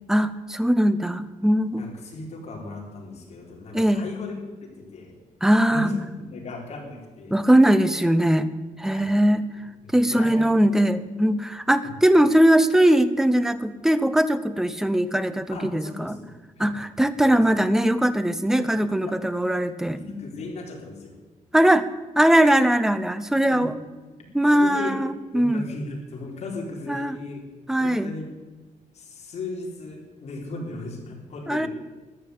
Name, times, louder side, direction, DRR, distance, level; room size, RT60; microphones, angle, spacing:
voice 1, 0.1-1.9 3.7-4.1 5.4-5.9 7.3-8.5 8.8-9.5 9.9-16.2 16.6-20.0 21.5-21.9 22.2-23.7 24.3-25.6 26.9-27.2 27.7-28.1 31.5-31.7, right 1 dB, 5° right, 12 dB, 0.7 m, -20 dB
voice 2, 1.8-5.2 5.7-5.9 6.2-7.4 8.9-9.1 9.6-10.8 15.5-16.3 16.6-16.7 17.2-17.4 18.6-18.8 19.0-19.2 19.9-21.1 23.5-23.7 24.5-25.0 25.3-27.4 27.8-28.2 28.9-31.7, left 3 dB, 50° left, -1 dB, 4.2 m, -37 dB
13.5 x 10.5 x 8.3 m, 1.3 s
cardioid pair, 155°, 14 cm